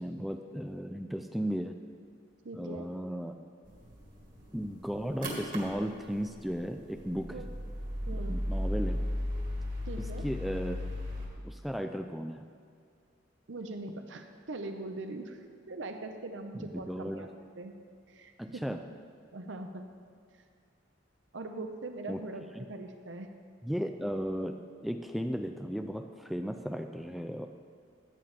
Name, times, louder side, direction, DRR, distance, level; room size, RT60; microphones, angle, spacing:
voice 1, 0.0-1.7 2.6-3.3 4.5-7.3 8.1-9.0 10.0-10.8 11.4-12.4 16.5-17.3 18.4-18.8 22.1-22.2 22.6-22.7 23.6-24.6 24.8-27.5, equal, ahead, 6 dB, 0.3 m, -35 dB
voice 2, 2.4-2.9 7.3-7.5 8.1-8.4 9.9-10.3 13.5-17.3 17.6-17.7 18.1-18.6 19.3-19.9 21.3-23.3, right 2 dB, 75° right, 6 dB, 0.8 m, -41 dB
sound 1, 3.6-11.3, left 1 dB, 45° right, 2.1 m, -36 dB
14.5 x 8.8 x 3.4 m, 2.3 s
head